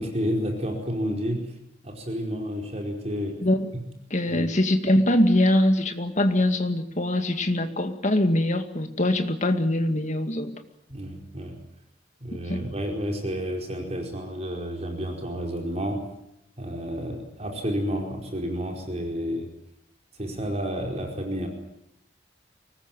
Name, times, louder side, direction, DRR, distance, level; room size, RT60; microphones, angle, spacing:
voice 1, 0.0-1.5 1.8-3.4 4.3-4.5 10.9-11.6 12.2-16.0 16.6-19.5 20.1-21.5, equal, 35° right, 2 dB, 4.8 m, -30 dB
voice 2, 3.4-3.8 4.1-10.5 12.5-12.6, left 1 dB, 40° left, 7 dB, 2.2 m, -23 dB
24.0 x 20.0 x 9.2 m, 0.79 s
head